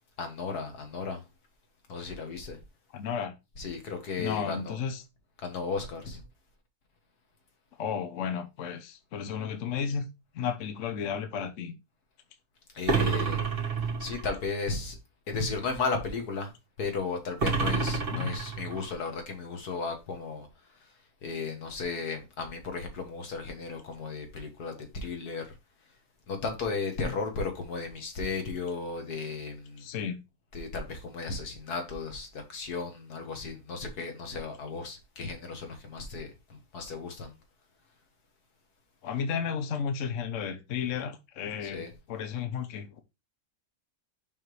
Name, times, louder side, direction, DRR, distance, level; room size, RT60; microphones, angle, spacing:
voice 1, 0.2-1.2 1.9-2.6 3.6-4.7 5.4-6.2 12.7-13.4 14.0-15.0 15.3-16.5 16.8-20.5 21.2-25.5 26.3-29.8 30.5-37.3 41.6-41.9, left 4 dB, 80° left, 1.9 m, -35 dB
voice 2, 2.9-3.3 4.2-5.0 7.8-10.0 10.3-11.8 18.1-18.3 27.0-27.2 29.8-30.2 39.0-43.0, left 7 dB, 60° left, 1.0 m, -33 dB
sound 1, 12.9-14.3 17.4-18.9, right 5 dB, 40° right, 1.5 m, -29 dB
5.6 x 5.5 x 3.2 m
omnidirectional pair, 1.6 m